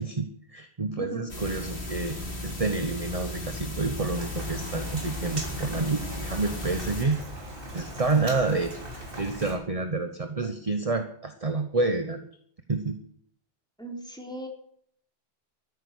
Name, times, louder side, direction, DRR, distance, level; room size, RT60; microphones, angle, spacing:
voice 1, 0.0-2.2 2.4-7.2 7.7-8.7 9.2-12.2 12.7-13.0, right 3 dB, 35° right, 7 dB, 1.1 m, -28 dB
voice 2, 1.0-1.3 13.8-14.5, equal, 5° left, 0 dB, 3.7 m, -38 dB
sound 1, 1.3-7.0, left 1 dB, 85° left, 3.6 m, -36 dB
Rain, 4.1-9.5, equal, 60° right, 3.6 m, -39 dB
14.0 x 9.8 x 8.1 m, 0.64 s
omnidirectional pair, 1.1 m